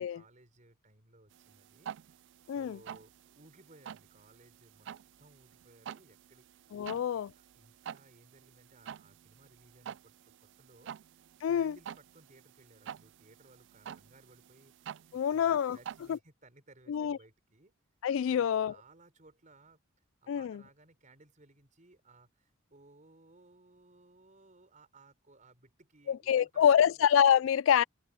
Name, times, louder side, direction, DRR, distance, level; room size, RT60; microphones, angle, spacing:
voice 1, 0.0-4.9 5.2-10.9 11.4-17.7 18.3-19.8 20.2-27.1, right 2 dB, 40° right, 5.0 m, -61 dB
sound 1, 1.3-16.2, right 9 dB, 60° right, 0.3 m, -49 dB
voice 2, 2.5-2.8 6.7-7.3 11.4-11.8 15.1-15.8 16.1-16.2 16.9-17.2 18.0-18.7 20.3-20.6 26.1-27.8, left 8 dB, 70° left, 0.3 m, -26 dB
head